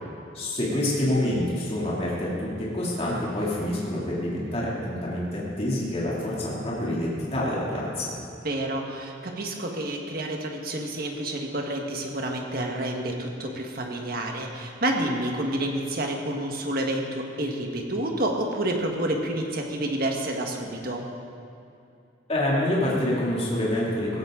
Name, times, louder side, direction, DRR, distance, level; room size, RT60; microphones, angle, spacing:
voice 1, 0.3-8.1 22.3-24.2, left 1 dB, 30° left, -6 dB, 2.8 m, -27 dB
voice 2, 8.4-21.1, right 1 dB, 50° right, 2 dB, 1.6 m, -29 dB
16.0 x 15.5 x 3.9 m, 2.6 s
head